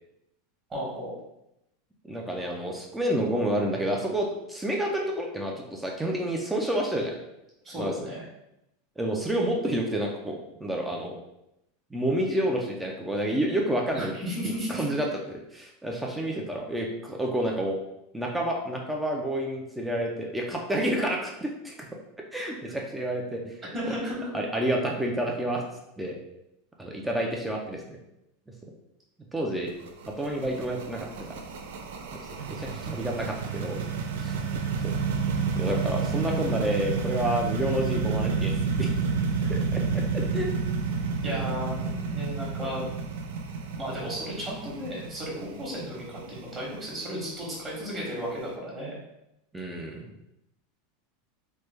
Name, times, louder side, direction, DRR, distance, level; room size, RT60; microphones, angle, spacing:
voice 1, 0.7-1.1 7.6-8.2 13.9-14.8 23.7-24.3 41.2-42.9 43.8-49.0, equal, 20° right, -5 dB, 0.9 m, -34 dB
voice 2, 2.0-7.1 7.8-7.9 9.0-11.2 11.9-14.2 14.7-17.8 18.1-21.7 22.3-23.6 24.3-25.6 26.0-26.1 26.8-28.0 29.3-29.7 30.2-31.3 32.5-33.8 34.2-34.3 35.6-38.9 39.5-40.5 49.5-50.1, right 1 dB, 5° right, 0 dB, 0.3 m, -29 dB
sound 1, 29.7-48.4, right 5 dB, 85° right, 0.4 m, -30 dB
3.1 x 2.1 x 3.2 m, 0.85 s
supercardioid pair, 155°, 0 cm